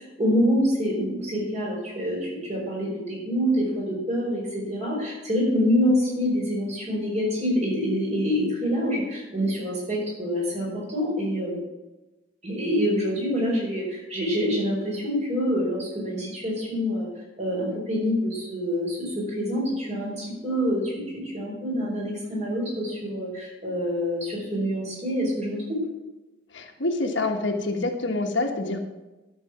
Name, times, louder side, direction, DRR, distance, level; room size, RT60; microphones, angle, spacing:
voice 1, 0.0-11.6 12.4-17.1 17.4-25.8, equal, 35° right, -3 dB, 4.6 m, -26 dB
voice 2, 26.5-28.8, left 2 dB, 70° left, 3 dB, 1.4 m, -26 dB
12.5 x 6.4 x 6.0 m, 1.1 s
head